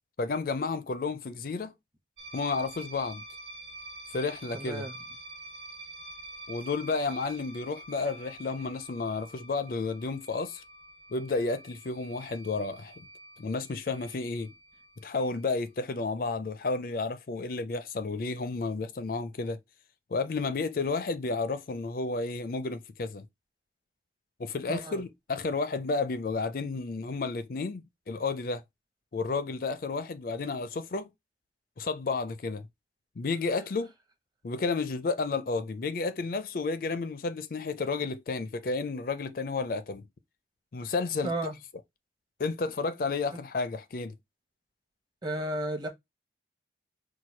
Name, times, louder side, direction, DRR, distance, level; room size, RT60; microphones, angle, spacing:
voice 1, 0.2-1.7 2.3-3.2 4.1-4.9 6.5-10.6 11.1-13.0 13.4-14.5 15.0-19.6 20.1-23.3 24.4-28.6 29.1-31.1 31.8-32.7 33.2-33.9 34.4-40.1 40.7-41.5 42.4-44.2, left 3 dB, 50° left, 0.4 m, -31 dB
sound 1, 2.2-15.8, right 2 dB, 80° right, 1.2 m, -47 dB
voice 2, 4.5-4.9 24.7-25.0 41.2-41.5 45.2-45.9, right 1 dB, 25° right, 0.9 m, -33 dB
4.5 x 2.2 x 4.4 m
head